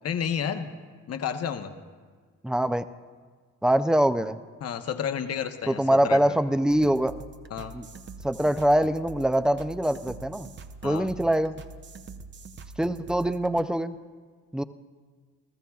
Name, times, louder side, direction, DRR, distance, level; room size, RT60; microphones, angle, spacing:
voice 1, 0.0-0.7 1.1-1.7 4.6-6.4 7.5-7.7 10.8-11.1, left 8 dB, 55° left, 8 dB, 0.9 m, -31 dB
voice 2, 2.4-2.9 3.6-4.4 5.7-7.2 7.7-7.9 8.2-10.5 10.8-11.6 12.8-13.9 14.5-14.6, right 1 dB, ahead, 11 dB, 0.4 m, -24 dB
sound 1, 6.7-13.6, right 4 dB, 40° right, 0.7 m, -44 dB
28.5 x 14.0 x 2.4 m, 1.5 s
cardioid pair, 90°, 30 cm